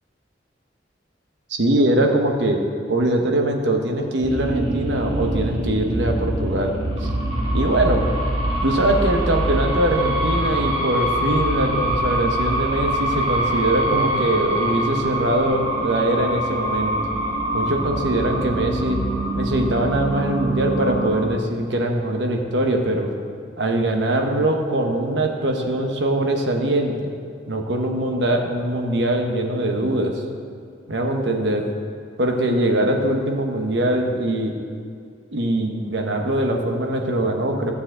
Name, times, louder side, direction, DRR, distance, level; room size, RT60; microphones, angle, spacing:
voice 1, 1.5-2.6 2.9-6.7 7.0-7.1 7.5-8.0 8.6-16.9 17.5-19.0 19.3-23.1 23.6-27.2 27.5-30.2 30.9-31.7 32.2-34.6 35.3-37.7, right 1 dB, 80° right, 3 dB, 1.1 m, -22 dB
sound 1, 4.2-21.3, right 1 dB, 30° right, 1.7 m, -24 dB
13.0 x 7.0 x 3.8 m, 2.3 s
head